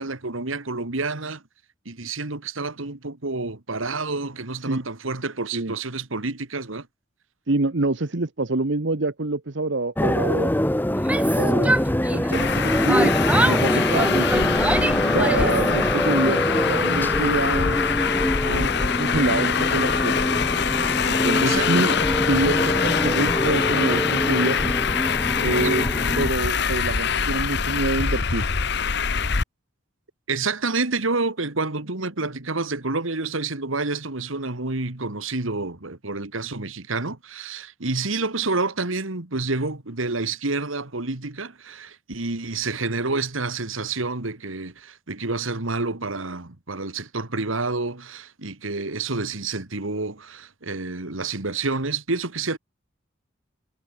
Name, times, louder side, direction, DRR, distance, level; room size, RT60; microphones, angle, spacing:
voice 1, 0.0-1.4 1.9-6.9 21.4-21.7 30.3-52.6, right 3 dB, 80° right, 2.1 m, -28 dB
voice 2, 7.5-10.5 11.4-11.7 12.1-14.5 15.0-17.8 18.4-20.3 21.0-24.7 25.4-25.9 26.2-28.5, right 2 dB, 60° right, 1.1 m, -26 dB
sound 1, 10.0-26.3, left 1 dB, 10° left, 1.0 m, -24 dB
Yell, 10.9-12.5 12.9-15.7, right 1 dB, 5° right, 0.5 m, -26 dB
Traffic noise roadway noise, 12.3-29.4, left 6 dB, 55° left, 1.0 m, -24 dB
head